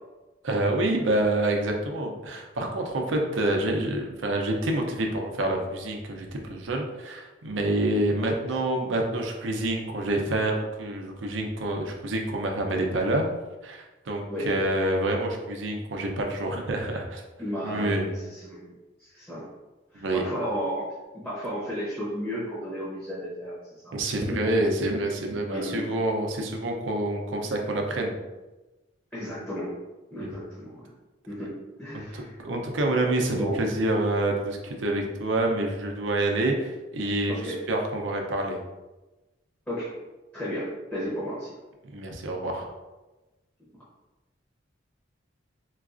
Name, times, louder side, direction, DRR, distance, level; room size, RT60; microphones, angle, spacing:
voice 1, 0.4-13.2 13.6-17.2 17.6-18.1 19.9-20.2 23.9-28.1 30.2-30.4 31.9-38.6 41.9-42.7, right 1 dB, 80° right, 2 dB, 0.5 m, -27 dB
voice 2, 17.4-18.7 19.0-19.5 19.9-20.9 21.1-23.5 23.8-23.9 24.3-24.4 25.4-25.9 29.1-29.7 30.1-30.9 31.3-31.5 31.8-32.4 33.3-33.6 37.3-37.6 39.7-39.9 40.3-41.5, equal, 10° left, -9 dB, 0.7 m, -33 dB
3.8 x 2.4 x 2.4 m, 1.1 s
head